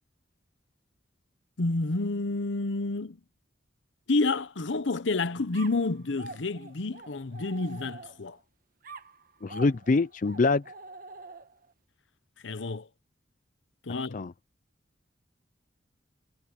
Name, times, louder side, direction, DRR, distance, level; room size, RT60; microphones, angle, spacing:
voice 1, 1.6-3.2 4.1-8.4 12.4-12.9 13.8-14.2, left 3 dB, 80° left, 0.9 m, -29 dB
sound 1, 5.5-8.4 8.8-11.7, right 3 dB, 50° right, 1.3 m, -46 dB
voice 2, 9.4-10.6 14.1-14.3, left 3 dB, 45° left, 0.4 m, -24 dB
head